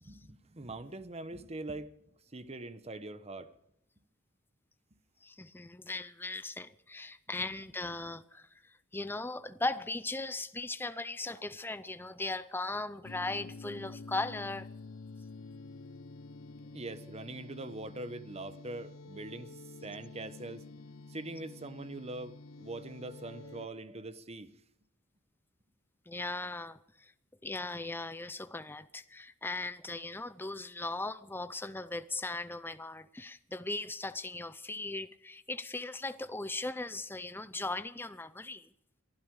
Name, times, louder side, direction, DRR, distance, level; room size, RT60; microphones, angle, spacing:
voice 1, 0.0-1.9 2.3-3.5 16.7-20.6 21.1-24.5, right 2 dB, 30° right, 1.0 m, -43 dB
voice 2, 5.2-8.5 8.9-14.7 26.1-27.1 27.4-38.7, left 2 dB, 10° left, 0.5 m, -38 dB
sound 1, 13.0-23.7, left 3 dB, 80° left, 0.8 m, -49 dB
23.0 x 12.0 x 4.8 m
head